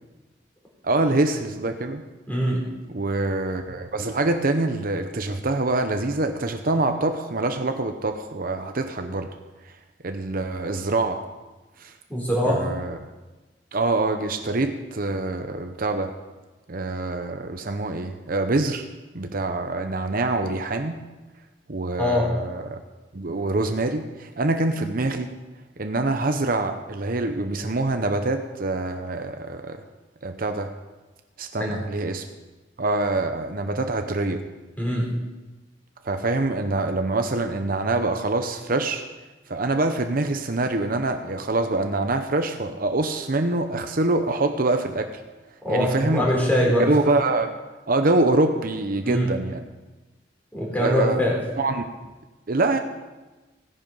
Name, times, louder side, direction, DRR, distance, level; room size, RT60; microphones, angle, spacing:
voice 1, 0.8-2.0 2.9-9.3 9.6-9.7 10.0-11.2 11.8-11.9 12.4-13.0 13.7-16.2 16.7-18.9 19.1-21.0 21.7-22.8 23.1-25.3 25.8-29.8 30.2-30.7 31.4-32.3 32.8-34.5 36.0-39.0 39.5-45.2 45.7-46.3 46.7-47.5 47.9-49.7 50.7-51.2 51.6-51.9 52.5-52.8, right 2 dB, 50° right, 6 dB, 0.8 m, -25 dB
voice 2, 2.3-2.6 12.1-12.7 22.0-22.3 31.6-31.7 34.8-35.1 45.6-46.9 49.0-49.3 50.5-51.4, equal, 10° left, -3 dB, 4.1 m, -22 dB
17.0 x 10.0 x 5.5 m, 1.2 s
head